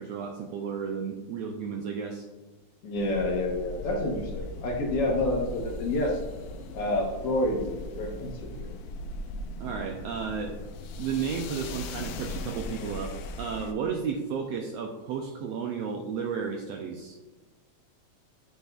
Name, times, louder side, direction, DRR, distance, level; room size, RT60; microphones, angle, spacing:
voice 1, 0.0-2.3 9.6-10.6 11.0-17.2, right 6 dB, 85° right, 2 dB, 1.5 m, -33 dB
voice 2, 2.8-6.2 6.7-7.7 8.0-8.7, left 1 dB, 65° left, -1 dB, 1.6 m, -28 dB
sound 1, 2.9-13.7, left 2 dB, 80° left, 1.9 m, -38 dB
8.1 x 6.7 x 2.3 m, 1.2 s
omnidirectional pair, 3.4 m